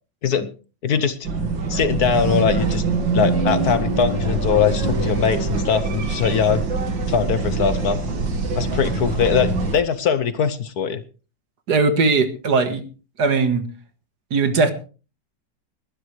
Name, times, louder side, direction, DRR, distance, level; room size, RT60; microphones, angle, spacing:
voice 1, 0.8-1.2 1.7-2.8 3.1-6.6 7.1-8.0 8.5-11.0, left 7 dB, 60° left, 12 dB, 1.4 m, -21 dB
sound 1, 1.2-9.8, right 3 dB, 85° right, 2.6 m, -24 dB
voice 2, 11.7-12.8 13.2-13.6 14.3-14.7, right 4 dB, 65° right, 9 dB, 2.1 m, -19 dB
21.0 x 12.0 x 3.3 m, 0.35 s
omnidirectional pair, 2.0 m